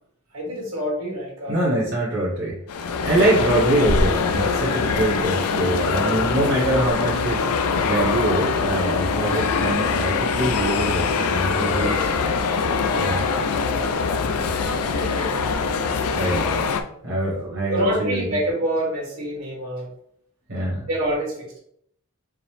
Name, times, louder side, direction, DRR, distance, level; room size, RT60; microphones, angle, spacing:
voice 1, 0.3-1.7 5.8-6.3 11.6-12.4 12.7-13.8 14.9-15.4 17.4-19.9 20.9-21.6, right 1 dB, 75° right, -3 dB, 1.5 m, -28 dB
voice 2, 1.5-2.6 3.0-7.5 7.9-12.0 13.0-13.2 14.4-14.5 16.1-16.5 17.0-18.2 20.5-20.9, right 1 dB, 55° right, -6 dB, 1.1 m, -24 dB
sound 1, 2.7-16.8, left 5 dB, 80° left, 0.4 m, -23 dB
4.9 x 2.1 x 3.1 m, 0.68 s
head